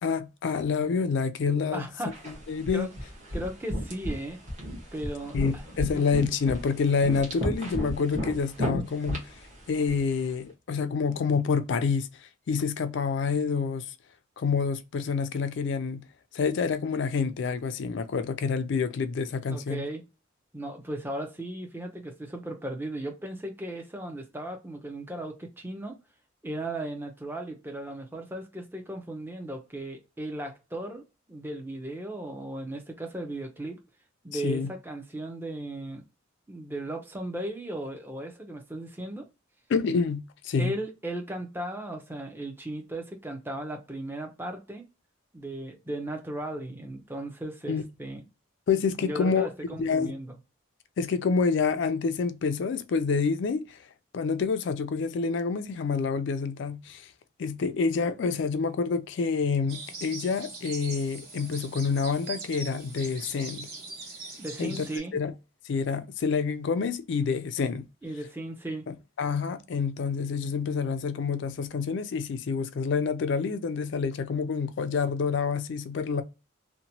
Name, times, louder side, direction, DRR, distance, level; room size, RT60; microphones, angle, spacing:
voice 1, 0.0-1.8 2.3-2.9 5.3-9.2 9.7-12.1 12.5-13.9 14.4-16.0 16.3-19.8 34.3-34.7 39.7-40.7 47.7-47.8 48.7-50.1 51.0-53.8 54.1-57.1 57.4-63.7 64.6-64.8 65.1-65.3 65.6-67.8 68.9-76.2, left 5 dB, 65° left, 0.3 m, -28 dB
voice 2, 1.7-2.1 2.7-2.9 3.3-4.4 4.9-5.6 5.9-6.1 19.5-20.0 20.5-26.0 26.4-33.8 34.2-36.0 36.5-39.3 40.6-44.8 45.3-48.2 49.0-50.4 64.4-65.1 68.0-68.9, right 1 dB, 10° right, 0.6 m, -36 dB
sound 1, 2.1-10.3, equal, 35° right, 1.1 m, -35 dB
sound 2, 59.7-65.0, right 3 dB, 55° right, 1.3 m, -41 dB
2.9 x 2.1 x 2.7 m
head